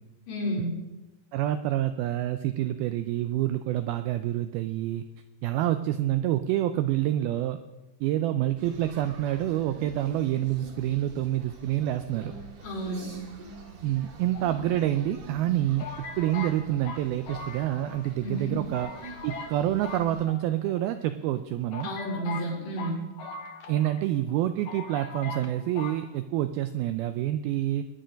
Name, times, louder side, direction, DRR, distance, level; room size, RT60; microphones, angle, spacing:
voice 1, 0.3-0.7 12.6-13.1 18.2-18.6 21.8-23.0, right 1 dB, 80° left, -4 dB, 6.5 m, -31 dB
voice 2, 1.3-5.1 5.4-7.6 8.0-12.3 13.8-18.9 19.2-21.9 23.7-27.8, right 13 dB, 85° right, 10 dB, 2.2 m, -27 dB
sound 1, 8.6-20.3, right 3 dB, 60° right, 4.2 m, -46 dB
sound 2, 14.3-15.1 15.8-18.1 18.4-18.5 18.7-19.6 19.8-20.8 21.3-21.4 21.7-24.0 24.3-24.4 24.7-25.5 25.8-26.0, left 4 dB, 65° left, 2.8 m, -40 dB
21.5 x 10.0 x 5.2 m, 1.1 s
omnidirectional pair, 4.9 m